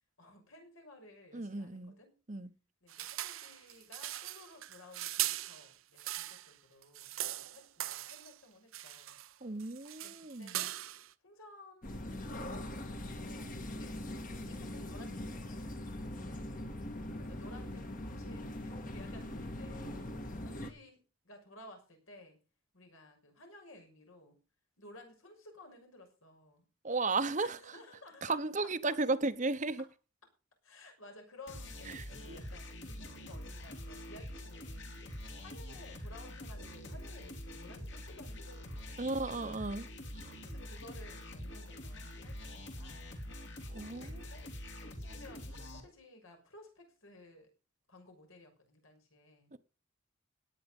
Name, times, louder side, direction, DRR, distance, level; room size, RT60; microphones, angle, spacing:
voice 1, 0.2-2.1 2.8-9.2 10.0-12.8 13.2-15.9 17.1-21.0 21.2-22.4 22.7-24.4 24.8-26.6 27.4-29.0 29.8-29.9 30.6-39.1 40.4-43.2 43.9-47.5 47.9-49.5, left 2 dB, 80° left, 6.4 m, -56 dB
voice 2, 1.3-2.0 2.3-2.5 9.4-10.6 26.8-27.6 28.2-29.8 31.9-32.4 39.0-39.9 40.1-40.3 43.7-44.2 49.5-49.6, right 3 dB, 35° right, 0.9 m, -35 dB
sound 1, 2.9-6.5 6.8-8.4 8.7-9.3 9.6-11.1, right 14 dB, 75° right, 0.8 m, -40 dB
sound 2, 11.8-20.7, left 1 dB, 40° left, 1.7 m, -42 dB
sound 3, 31.5-45.8, left 1 dB, 55° left, 3.1 m, -45 dB
18.0 x 9.3 x 5.4 m
head